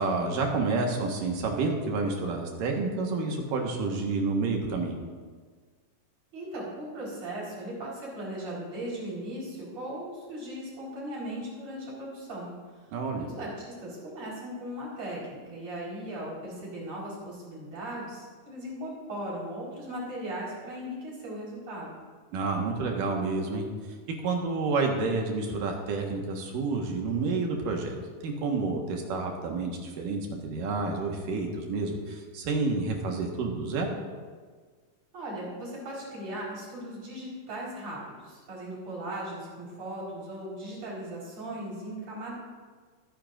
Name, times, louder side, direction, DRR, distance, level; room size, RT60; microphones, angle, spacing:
voice 1, 0.0-5.0 12.9-13.3 22.3-23.7 24.2-28.0 28.2-33.9, right 3 dB, 85° right, 1 dB, 3.1 m, -29 dB
voice 2, 6.3-12.5 12.8-22.0 35.1-42.3, right 1 dB, 50° right, -5 dB, 5.5 m, -38 dB
24.0 x 10.5 x 2.6 m, 1.5 s
omnidirectional pair, 3.7 m